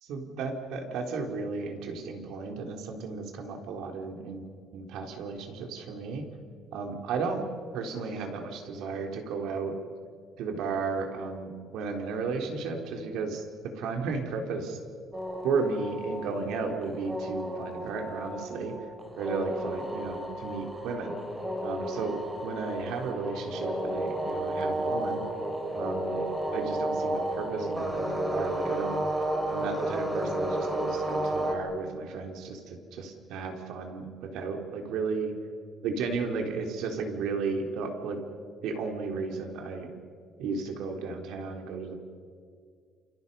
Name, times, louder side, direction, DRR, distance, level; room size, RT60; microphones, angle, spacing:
voice 1, 0.0-4.4 4.7-6.2 6.7-7.4 7.7-9.8 10.4-14.8 15.4-18.7 19.1-21.2 21.6-25.2 25.7-26.2 26.5-29.0 29.5-35.3 35.8-38.2 38.6-39.9 40.4-42.0, right 4 dB, 85° right, 3 dB, 3.5 m, -34 dB
sound 1, 15.1-31.5, right 1 dB, 15° right, 3.6 m, -32 dB
29.0 x 28.5 x 5.5 m, 2.2 s
cardioid pair, 140°, 0 cm